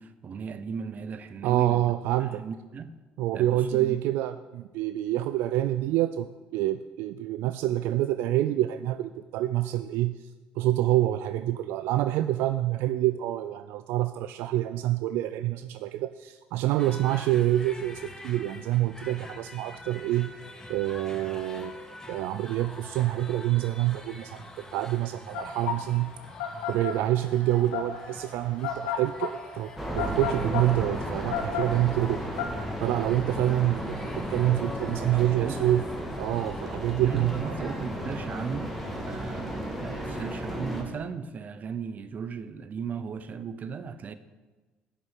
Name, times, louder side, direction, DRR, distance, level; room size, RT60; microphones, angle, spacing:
voice 1, 0.0-2.9 3.3-4.0 12.0-12.1 35.1-35.7 37.0-38.7 39.0-44.1, right 6 dB, 45° right, 0.7 m, -37 dB
voice 2, 1.4-2.4 3.2-10.3 10.6-20.3 20.7-26.1 26.7-32.2 32.8-35.8 36.1-37.7, right 14 dB, 75° right, 0.3 m, -27 dB
sound 1, 16.8-36.6, left 2 dB, 15° left, 1.5 m, -46 dB
sound 2, 25.3-32.4, left 8 dB, 90° left, 0.8 m, -33 dB
sound 3, 29.8-40.8, equal, ahead, 2.2 m, -34 dB
7.9 x 6.1 x 7.4 m
supercardioid pair, 70°, 4 cm